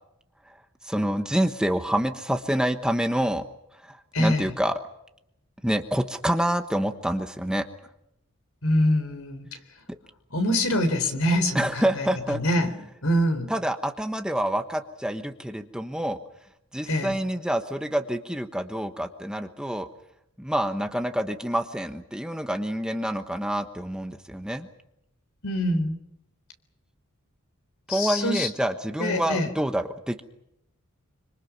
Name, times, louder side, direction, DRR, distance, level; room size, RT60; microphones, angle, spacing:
voice 1, 0.8-3.4 3.8-4.8 5.6-7.7 11.5-12.7 13.5-16.2 16.7-19.9 20.4-24.7 27.9-30.2, right 1 dB, 5° right, 6 dB, 1.1 m, -27 dB
voice 2, 4.1-4.5 8.6-9.5 10.3-12.7 13.0-13.5 16.9-17.1 25.4-26.0 27.9-28.5 29.0-29.5, equal, 80° left, 8 dB, 3.8 m, -24 dB
26.0 x 25.5 x 6.1 m, 0.80 s
head